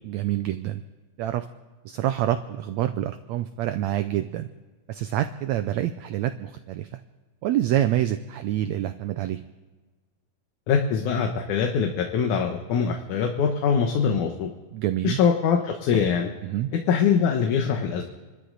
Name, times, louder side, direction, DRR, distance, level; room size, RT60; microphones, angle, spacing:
voice 1, 0.0-0.8 1.2-1.5 1.8-4.5 4.9-7.0 7.4-9.4 14.7-15.2 16.4-16.7, right 13 dB, 90° right, 9 dB, 1.5 m, -27 dB
voice 2, 10.7-14.5 15.0-16.3 16.7-18.0, left 6 dB, 70° left, 3 dB, 2.4 m, -23 dB
28.5 x 13.0 x 3.9 m, 1.3 s
omnidirectional pair, 3.9 m